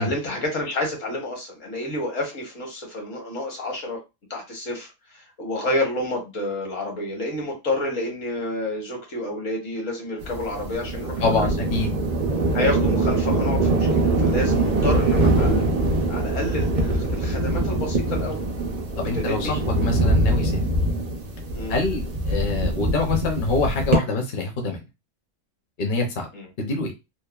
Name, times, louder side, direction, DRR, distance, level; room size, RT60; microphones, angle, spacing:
voice 1, 0.0-4.0 4.3-4.9 5.4-11.5 12.5-15.7 16.1-18.4 19.1-19.5 21.5-21.8 26.3-26.5, left 1 dB, 70° left, 1 dB, 1.4 m, -29 dB
sound 1, 10.2-24.0, right 2 dB, 50° right, 0.5 m, -23 dB
voice 2, 11.2-11.9 19.0-20.6 21.7-24.8 25.8-26.3 26.6-26.9, left 3 dB, 50° left, 2 dB, 0.7 m, -25 dB
2.9 x 2.1 x 2.3 m, 0.24 s
omnidirectional pair, 1.3 m